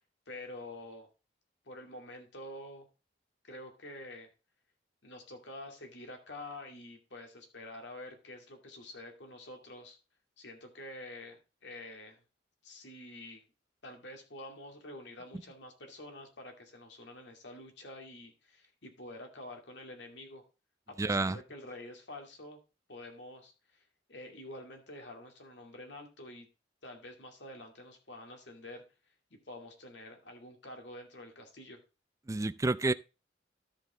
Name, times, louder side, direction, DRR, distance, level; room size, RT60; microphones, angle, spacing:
voice 1, 0.3-1.1 1.7-2.9 3.4-4.3 5.0-10.0 10.4-12.2 12.6-13.4 13.8-20.4 20.9-22.6 22.9-23.8 24.1-26.5 26.8-28.8 29.3-31.8, left 1 dB, 70° left, 2.4 m, -48 dB
voice 2, 21.0-21.4 32.3-32.9, right 2 dB, 15° right, 0.4 m, -29 dB
13.0 x 5.6 x 3.6 m
head